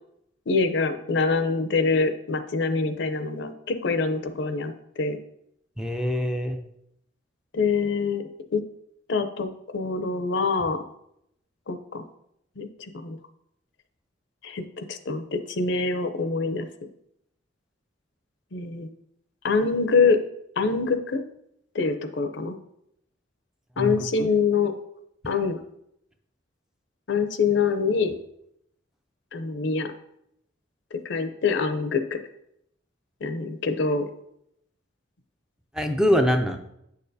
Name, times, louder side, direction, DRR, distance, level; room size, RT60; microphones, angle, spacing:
voice 1, 0.5-5.2 7.5-8.2 8.5-8.6 9.1-9.5 9.7-10.8 11.7-12.0 12.6-12.7 12.9-13.2 14.4-16.7 18.5-18.9 19.4-20.2 20.6-21.2 21.7-22.6 23.8-24.7 25.3-25.6 27.1-28.1 29.3-29.9 31.0-32.0 33.2-34.1, left 4 dB, 65° left, 9 dB, 0.6 m, -25 dB
voice 2, 5.8-6.6 23.8-24.3 35.7-36.6, equal, 5° right, 5 dB, 0.5 m, -24 dB
8.1 x 6.6 x 2.7 m, 0.77 s
head